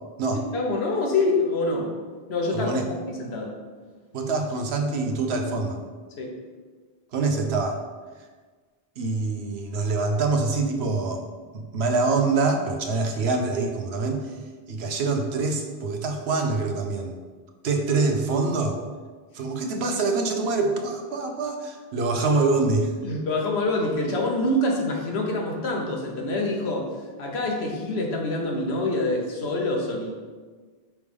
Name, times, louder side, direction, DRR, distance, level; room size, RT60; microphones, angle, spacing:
voice 1, 0.5-1.9 2.3-3.5 6.2-6.3 23.0-26.9 27.2-30.2, left 2 dB, 80° left, 0 dB, 1.3 m, -26 dB
voice 2, 4.1-5.8 7.1-7.8 9.0-11.2 11.5-14.3 14.7-17.2 17.6-18.8 19.3-22.9, right 3 dB, 80° right, 4 dB, 1.0 m, -25 dB
6.0 x 3.3 x 5.2 m, 1.4 s
omnidirectional pair, 1.1 m